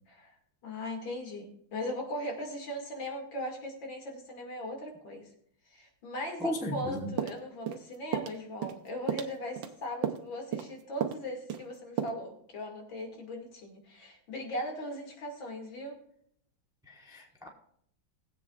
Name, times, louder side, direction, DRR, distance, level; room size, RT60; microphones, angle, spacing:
voice 1, 0.6-5.3 5.7-16.0, left 1 dB, 75° left, 1 dB, 3.0 m, -39 dB
voice 2, 6.4-7.1 16.9-17.5, equal, ahead, 1 dB, 1.0 m, -35 dB
sound 1, 7.2-7.8 8.1-8.4 8.6-8.8 9.1-9.7 10.0-10.3 10.5-10.7 11.0-11.2 11.5-11.7 12.0-12.1, right 9 dB, 80° right, 1.5 m, -33 dB
20.0 x 8.2 x 2.4 m, 0.67 s
omnidirectional pair, 2.1 m